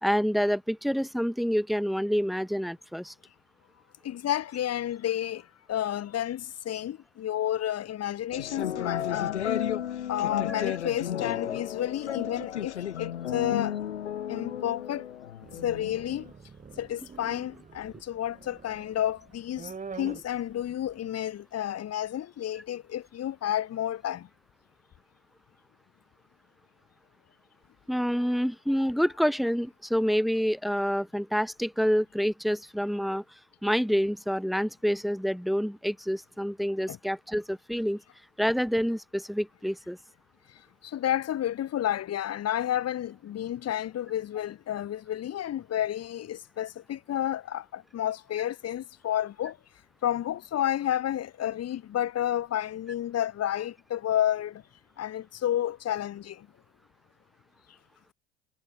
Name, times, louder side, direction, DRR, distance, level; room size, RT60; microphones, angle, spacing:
voice 1, 0.0-3.1 10.6-10.8 27.9-33.2 33.6-38.0 38.4-40.0, equal, ahead, 2.2 m, -27 dB
voice 2, 4.0-9.4 10.1-13.8 14.3-15.0 15.6-16.3 16.8-24.3 36.9-37.0 40.8-49.6 50.0-54.6 55.0-56.5, left 11 dB, 45° left, 2.5 m, -31 dB
sound 1, 8.3-16.3, left 10 dB, 85° left, 1.2 m, -33 dB
sound 2, 15.4-21.1, right 5 dB, 25° right, 1.9 m, -46 dB
figure-of-eight pair, 55°, 34 cm